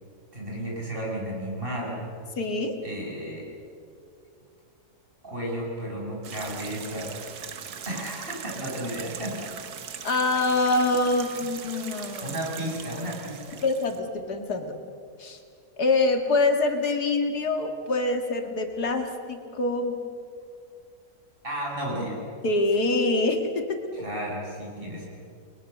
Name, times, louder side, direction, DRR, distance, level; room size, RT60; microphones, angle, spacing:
voice 1, 0.3-2.0 2.8-3.5 5.2-7.3 7.9-9.5 11.1-11.2 12.2-13.6 21.4-22.2 23.9-25.1, right 1 dB, 35° right, -3 dB, 7.1 m, -33 dB
voice 2, 2.4-2.7 10.0-12.4 13.6-14.7 15.2-15.4 15.8-20.0 22.4-23.8, left 2 dB, 80° left, 5 dB, 2.5 m, -25 dB
sound 1, 6.2-14.0, right 7 dB, 75° right, 1.7 m, -40 dB
30.0 x 21.5 x 6.7 m, 2.4 s
omnidirectional pair, 1.7 m